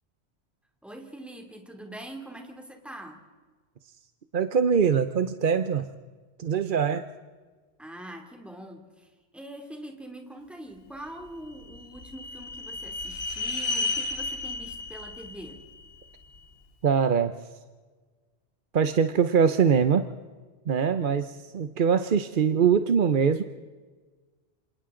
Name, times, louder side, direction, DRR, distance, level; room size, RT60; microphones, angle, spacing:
voice 1, 0.8-3.2 7.8-15.6, right 1 dB, ahead, 3 dB, 2.7 m, -43 dB
voice 2, 4.3-5.9 6.4-7.1 16.8-17.3 18.7-20.1 20.7-23.4, right 6 dB, 55° right, 10 dB, 0.9 m, -23 dB
sound 1, 11.3-16.5, left 3 dB, 65° left, 2.2 m, -33 dB
28.5 x 26.5 x 3.8 m, 1.4 s
omnidirectional pair, 1.1 m